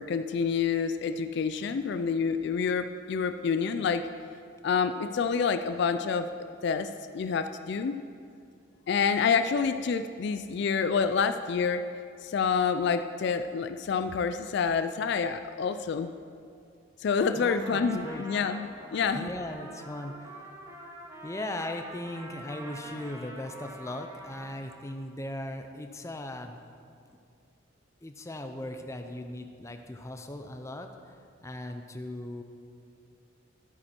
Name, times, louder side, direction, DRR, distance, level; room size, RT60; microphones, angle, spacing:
voice 1, 0.0-4.1 4.6-6.3 6.6-8.0 8.9-11.8 12.2-16.1 17.0-19.3, left 6 dB, 55° left, 9 dB, 0.3 m, -28 dB
Trumpet, 17.1-25.0, right 1 dB, 15° right, 1.1 m, -46 dB
voice 2, 17.3-18.2 19.1-20.5 21.2-26.6 28.0-32.4, left 1 dB, 15° left, 5 dB, 0.6 m, -38 dB
12.5 x 8.7 x 4.4 m, 2.4 s
head